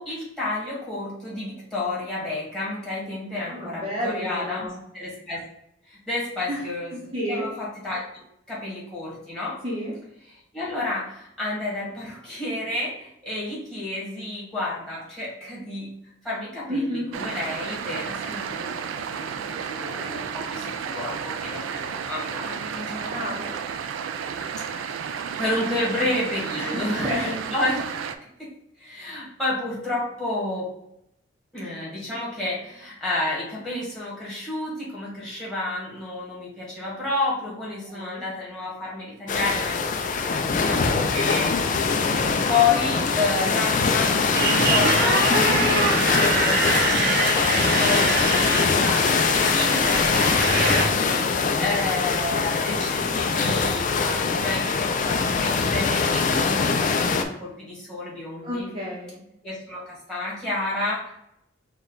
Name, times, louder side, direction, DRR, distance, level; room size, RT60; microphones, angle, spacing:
voice 1, 0.0-5.4 5.9-8.0 8.5-9.6 10.3-18.8 19.1-23.1 24.6-25.0 25.4-27.8 28.4-28.5 28.8-30.7 31.5-42.2 42.5-51.0 51.6-58.7 59.4-61.1, left 2 dB, 5° left, -6 dB, 1.6 m, -30 dB
voice 2, 3.4-4.8 6.5-6.6 6.9-7.5 9.6-9.9 16.7-17.1 22.5-23.6 26.5-27.4 37.5-38.2 45.3-45.7 55.5-55.6 58.4-59.2, equal, 25° right, -7 dB, 0.8 m, -31 dB
sound 1, 17.1-28.2, right 7 dB, 85° right, 0.3 m, -32 dB
sound 2, 39.3-57.2, left 5 dB, 40° left, 0.3 m, -22 dB
Motorcycle, 44.3-50.9, right 3 dB, 55° right, 0.7 m, -25 dB
4.3 x 2.3 x 3.8 m, 0.78 s
head